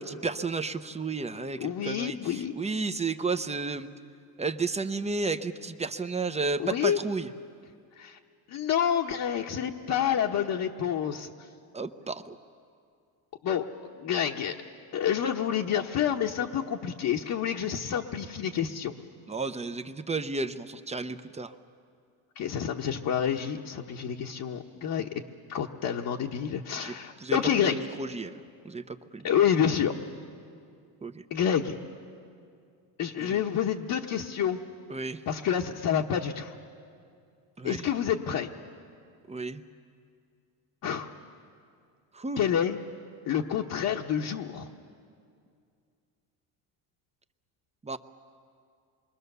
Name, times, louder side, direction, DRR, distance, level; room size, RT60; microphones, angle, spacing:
voice 1, 0.0-3.9 4.4-7.3 11.7-12.4 19.3-21.5 26.8-28.3 28.6-29.3 31.0-31.2 33.2-33.4 34.9-35.2 37.6-37.9 39.3-39.6 42.1-42.4 47.8-48.0, right 3 dB, 15° right, 10 dB, 0.7 m, -32 dB
voice 2, 1.6-2.5 6.6-7.0 8.0-8.2 8.5-11.3 13.4-13.7 14.0-14.6 14.9-18.9 22.4-25.1 25.5-27.8 29.2-29.9 31.3-31.8 33.0-34.6 35.3-36.5 37.6-38.5 40.8-41.1 42.4-42.8 43.3-44.7, left 9 dB, 50° left, 1 dB, 1.1 m, -28 dB
27.5 x 23.0 x 6.8 m, 2.4 s
cardioid pair, 115°, 43 cm